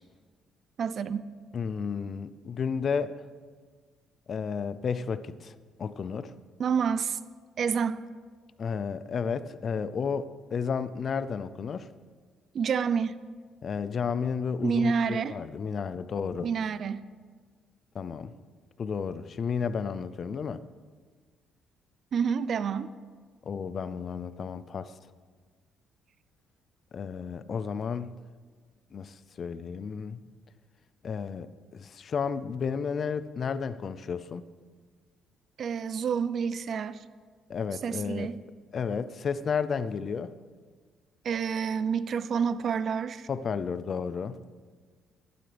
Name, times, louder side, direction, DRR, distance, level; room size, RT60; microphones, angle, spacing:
voice 1, 0.8-1.3 6.6-7.2 7.6-8.0 12.5-13.2 14.6-15.4 16.4-17.1 22.1-22.9 35.6-37.0 37.8-38.4 41.2-43.3, right 6 dB, 55° right, 15 dB, 0.5 m, -28 dB
voice 2, 1.5-3.2 4.3-6.3 8.6-11.9 13.6-16.5 17.9-18.3 18.8-20.6 23.5-24.9 26.9-28.1 28.9-30.2 31.0-34.5 37.5-38.3 38.7-40.3 43.3-44.4, left 6 dB, 50° left, 15 dB, 0.5 m, -32 dB
13.5 x 11.5 x 3.4 m, 1.6 s
cardioid pair, 90°, 0 cm